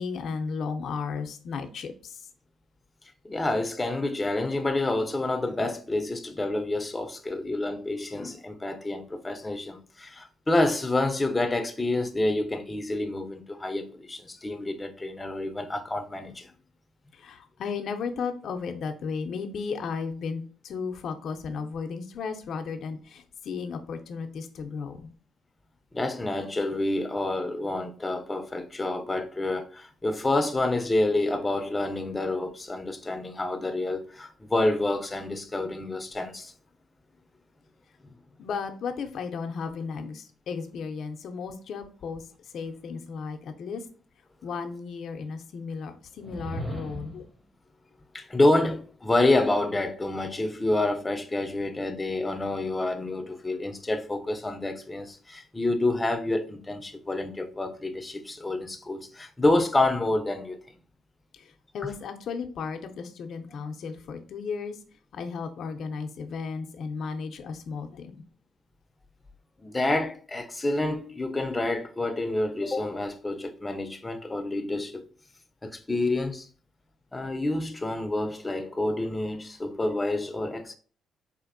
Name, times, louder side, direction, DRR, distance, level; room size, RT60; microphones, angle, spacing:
voice 1, 0.0-2.2 17.2-25.1 38.4-42.2 42.5-43.8 44.4-47.2 61.7-64.7 65.1-68.2, left 5 dB, 65° left, 0.5 m, -34 dB
voice 2, 3.2-16.5 25.9-36.5 48.1-60.6 69.6-75.1 75.6-76.5 77.1-80.7, left 2 dB, 20° left, 0.5 m, -28 dB
sound 1, 46.1-47.3, equal, 25° right, 0.9 m, -37 dB
4.2 x 2.5 x 2.5 m
cardioid pair, 90°, 0 cm